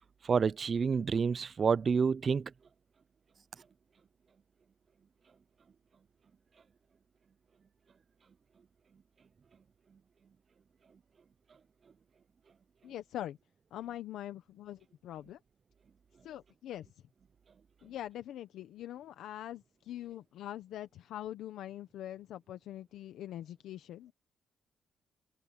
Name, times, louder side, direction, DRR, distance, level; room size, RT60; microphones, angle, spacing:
voice 1, 0.2-2.5, right 5 dB, 45° right, 0.5 m, -28 dB
voice 2, 12.8-13.4 13.7-15.4 16.2-16.9 17.8-24.1, left 12 dB, 80° left, 1.0 m, -43 dB
cardioid pair, 90°, 0 cm